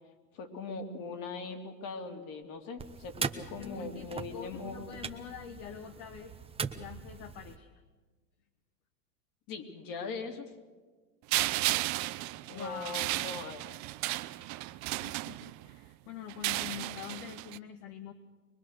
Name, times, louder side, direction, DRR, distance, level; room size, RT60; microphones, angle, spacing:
voice 1, 0.3-4.8 9.5-10.5 12.5-13.7, left 4 dB, 40° left, 5 dB, 3.0 m, -40 dB
sound 1, 2.8-7.6, right 5 dB, 10° right, 1.0 m, -40 dB
voice 2, 3.6-6.3 6.8-7.7 12.5-13.1 14.5-18.1, left 9 dB, 55° left, 7 dB, 1.5 m, -45 dB
sound 2, 11.3-15.8 16.3-17.6, right 19 dB, 35° right, 0.7 m, -34 dB
23.0 x 22.0 x 6.6 m, 1.3 s
hypercardioid pair, 115°, 49 cm